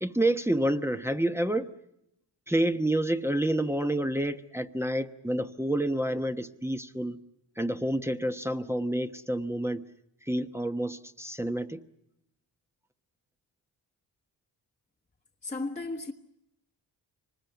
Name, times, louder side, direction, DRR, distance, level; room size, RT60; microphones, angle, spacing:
voice 1, 0.0-1.7 2.5-7.2 7.6-9.8 10.3-11.8, right 1 dB, 5° right, 1.1 m, -28 dB
voice 2, 15.4-16.1, left 3 dB, 15° left, 1.3 m, -34 dB
25.0 x 20.5 x 9.3 m
cardioid pair, 80°, 42 cm